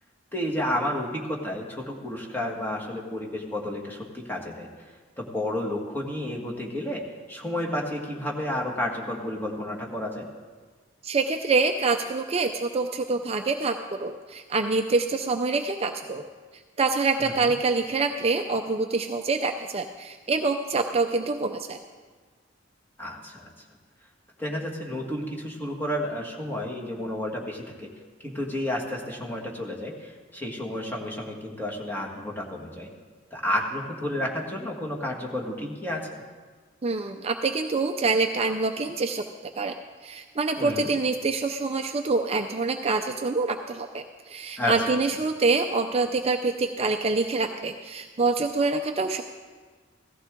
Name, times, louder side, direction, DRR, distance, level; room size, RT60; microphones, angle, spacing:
voice 1, 0.3-4.7 5.2-7.0 7.3-10.3 17.2-17.5 23.0-23.5 24.4-27.9 28.2-32.9 33.3-36.2 40.6-40.9 44.6-45.0, left 1 dB, 10° left, -2 dB, 1.8 m, -31 dB
voice 2, 11.0-16.3 16.8-21.8 36.8-39.2 39.6-39.7 40.0-49.2, right 3 dB, 30° right, 6 dB, 0.5 m, -26 dB
16.0 x 14.5 x 3.8 m, 1.4 s
head